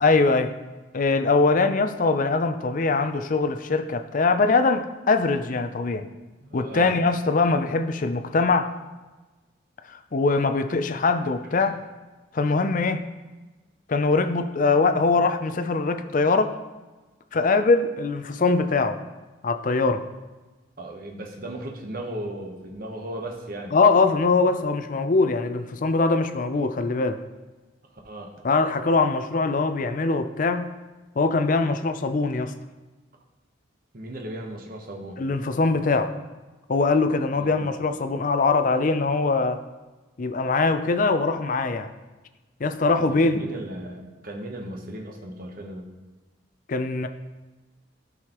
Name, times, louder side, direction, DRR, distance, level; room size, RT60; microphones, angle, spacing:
voice 1, 0.0-0.5 0.9-6.1 6.5-8.7 9.9-11.7 12.3-13.1 13.9-16.5 17.3-19.0 19.4-20.0 23.7-27.2 28.4-30.7 31.2-32.5 35.2-36.1 36.7-39.6 40.2-41.9 42.6-43.4 46.7-47.1, left 3 dB, 45° left, 8 dB, 0.5 m, -22 dB
voice 2, 6.4-6.9 11.6-11.7 20.8-23.7 28.0-28.3 33.9-35.2 37.3-37.7 43.0-45.9, right 1 dB, 50° right, 1 dB, 1.0 m, -36 dB
12.0 x 4.7 x 3.0 m, 1.2 s
head